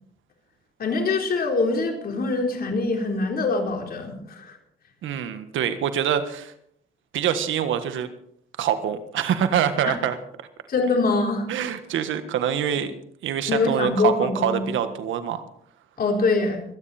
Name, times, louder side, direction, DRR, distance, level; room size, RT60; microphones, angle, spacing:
voice 1, 0.8-4.6 9.8-10.0 10.7-11.5 13.5-14.7 16.0-16.6, left 3 dB, 50° left, 2 dB, 3.9 m, -24 dB
voice 2, 5.0-6.5 7.1-8.1 8.6-10.2 11.5-12.9 13.2-15.4, right 9 dB, 75° right, 10 dB, 1.5 m, -25 dB
24.5 x 9.9 x 4.3 m, 0.68 s
cardioid pair, 90°, 20 cm